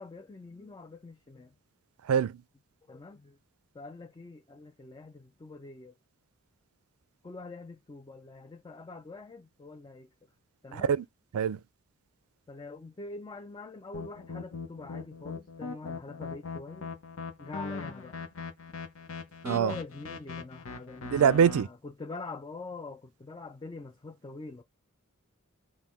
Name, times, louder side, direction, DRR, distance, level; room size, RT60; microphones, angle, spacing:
voice 1, 0.0-1.5 2.9-3.4 3.7-5.9 7.2-10.1 10.6-10.9 12.5-16.9 17.4-18.2 19.4-24.6, left 3 dB, 20° left, 0.3 m, -44 dB
voice 2, 2.1-2.4 10.7-11.1 11.3-11.6 19.4-19.7 21.1-21.7, right 7 dB, 80° right, 0.3 m, -24 dB
sound 1, 13.9-21.6, left 4 dB, 70° left, 0.7 m, -40 dB
5.4 x 2.1 x 3.0 m
head